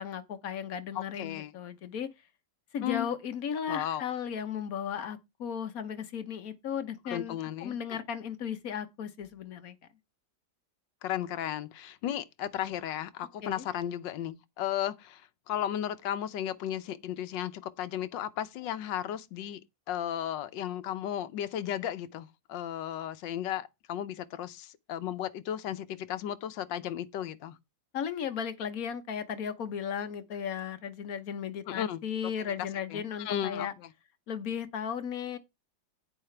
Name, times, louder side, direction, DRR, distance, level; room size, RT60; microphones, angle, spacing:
voice 1, 0.0-2.1 2.7-9.8 13.4-13.6 27.9-33.7 34.3-35.4, left 8 dB, 55° left, 1.3 m, -35 dB
voice 2, 0.9-1.5 2.8-3.1 3.7-4.0 7.1-7.8 11.0-19.6 19.9-27.6 31.7-32.0 32.9-33.9, left 11 dB, 75° left, 1.4 m, -35 dB
10.5 x 9.3 x 3.3 m
omnidirectional pair, 2.0 m